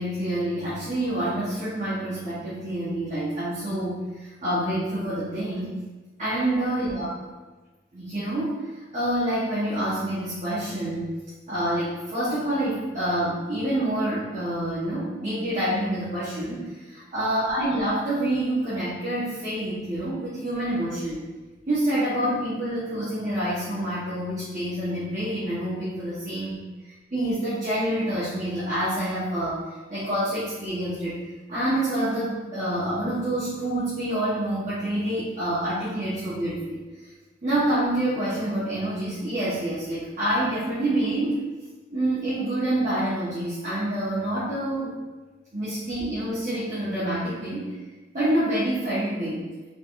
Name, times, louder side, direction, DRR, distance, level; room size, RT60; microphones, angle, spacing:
voice 1, 0.0-5.8 6.2-7.1 7.9-8.7 8.9-11.2 11.5-21.2 21.7-26.6 27.1-29.6 29.9-31.2 31.5-36.8 37.4-41.4 41.9-45.0 45.5-47.8 48.1-49.4, right 1 dB, 45° right, -10 dB, 1.0 m, -27 dB
4.1 x 3.6 x 2.4 m, 1.2 s
head